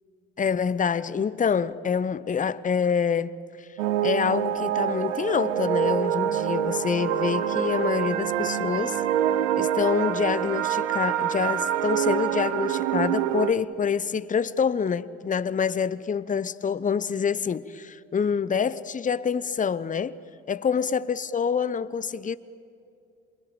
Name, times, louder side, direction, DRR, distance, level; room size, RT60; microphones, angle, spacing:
voice 1, 0.4-3.3 3.6-3.7 4.0-9.0 9.6-20.2 20.5-22.4, left 6 dB, 20° left, 0.8 m, -26 dB
sound 1, 3.8-13.5, right 10 dB, 75° right, 1.2 m, -26 dB
27.5 x 21.5 x 8.8 m
hypercardioid pair, 55°, 37 cm